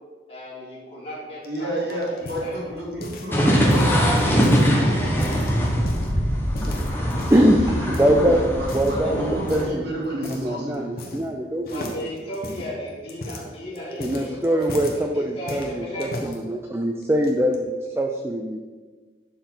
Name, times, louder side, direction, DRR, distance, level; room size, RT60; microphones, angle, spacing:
voice 1, 0.3-2.7 11.7-16.1, equal, 35° left, -6 dB, 2.6 m, -36 dB
sound 1, 1.4-3.4 3.7-4.7 5.1-6.1 6.5-7.5 7.9-8.2 8.6-9.0 9.5-9.8 10.2-10.5 10.7-11.4 11.7-15.0 15.5-16.4 17.0-17.6, left 1 dB, 55° left, 1.0 m, -36 dB
voice 2, 1.5-5.3 7.4-11.1, right 1 dB, 70° right, -3 dB, 2.2 m, -31 dB
sound 2, 3.3-9.7, equal, 15° left, 1.1 m, -22 dB
voice 3, 6.9-7.6 8.0-8.4 8.7-9.2 9.5-9.8 10.3-11.9 14.0-18.6, equal, 15° right, 2 dB, 0.4 m, -22 dB
11.0 x 4.6 x 3.9 m, 1.4 s
head